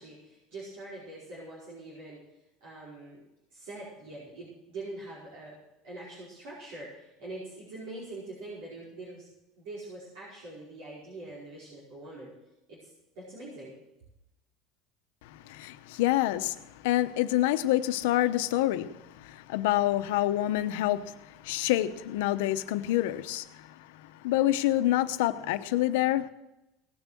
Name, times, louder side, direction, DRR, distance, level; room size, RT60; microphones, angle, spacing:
voice 1, 0.0-2.2 2.6-3.2 3.5-5.6 5.8-9.3 9.6-12.3 12.7-12.9 13.1-13.7, right 2 dB, 65° right, -6 dB, 4.9 m, -43 dB
voice 2, 15.2-26.3, left 14 dB, 80° left, 11 dB, 0.9 m, -27 dB
18.0 x 7.2 x 7.6 m, 0.92 s
cardioid pair, 180°, 0 cm